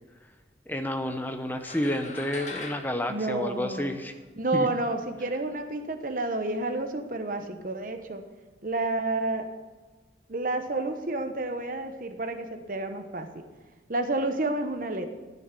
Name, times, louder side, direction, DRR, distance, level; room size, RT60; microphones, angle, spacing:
voice 1, 0.7-4.1 4.5-4.7, left 1 dB, 10° left, 6 dB, 0.9 m, -30 dB
sound 1, 1.6-4.2, left 3 dB, 40° left, 1.2 m, -42 dB
voice 2, 3.1-4.0 4.4-8.2 8.6-9.5 10.3-13.4 13.9-15.1, right 2 dB, 45° right, 7 dB, 1.0 m, -30 dB
13.5 x 6.4 x 8.3 m, 1.3 s
head